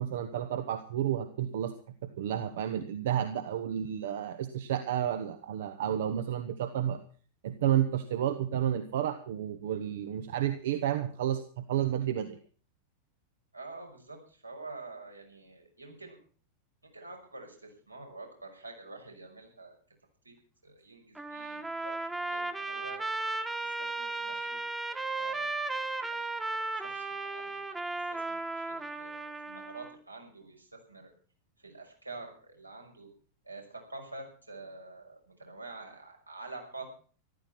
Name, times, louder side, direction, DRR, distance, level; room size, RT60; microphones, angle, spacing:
voice 1, 0.0-1.7 2.0-7.0 7.4-11.4 11.7-12.4, right 10 dB, 55° right, 9 dB, 1.4 m, -31 dB
voice 2, 13.5-16.2 16.8-19.8 20.2-20.3 20.6-23.0 23.6-24.6 25.2-25.6 26.1-27.6 28.1-31.1 31.6-33.1 33.4-36.9, right 3 dB, 85° right, 2 dB, 5.7 m, -47 dB
Trumpet, 21.2-30.0, right 3 dB, 10° right, 1.6 m, -35 dB
14.5 x 13.5 x 5.8 m, 0.42 s
figure-of-eight pair, 90°, 0 cm